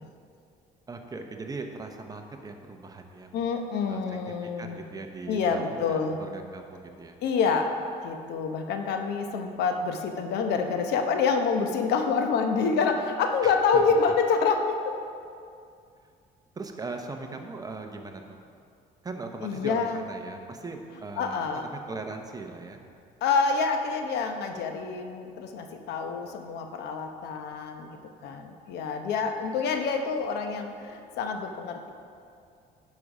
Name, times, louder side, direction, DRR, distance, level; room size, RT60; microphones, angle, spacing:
voice 1, 0.9-3.4 3.9-4.0 4.3-7.2 13.4-13.8 16.6-18.5 19.0-22.8, right 3 dB, 20° right, 4 dB, 0.8 m, -39 dB
voice 2, 3.3-4.8 5.3-6.2 7.2-7.7 8.0-14.9 19.4-20.0 21.2-21.7 23.2-31.9, left 5 dB, 80° left, 5 dB, 0.9 m, -27 dB
10.5 x 5.4 x 5.0 m, 2.4 s
cardioid pair, 110°, 17 cm